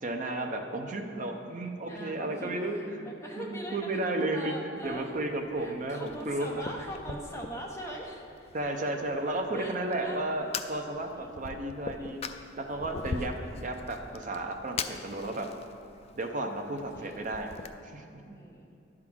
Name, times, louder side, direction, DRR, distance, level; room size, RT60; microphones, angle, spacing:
voice 1, 0.0-3.1 3.4-6.7 7.1-7.2 8.5-12.2 12.6-15.5 16.2-17.5 17.9-18.4, right 2 dB, 45° right, 4 dB, 0.7 m, -33 dB
voice 2, 1.9-3.9 4.3-5.1 5.6-8.5 9.5-9.7 10.0-10.4 11.1-11.5 12.0-12.5 16.7-17.3 18.3-18.8, equal, 15° left, -2 dB, 1.0 m, -42 dB
Fire, 4.8-17.7, left 5 dB, 35° left, 0.3 m, -42 dB
11.0 x 3.7 x 6.1 m, 2.6 s
head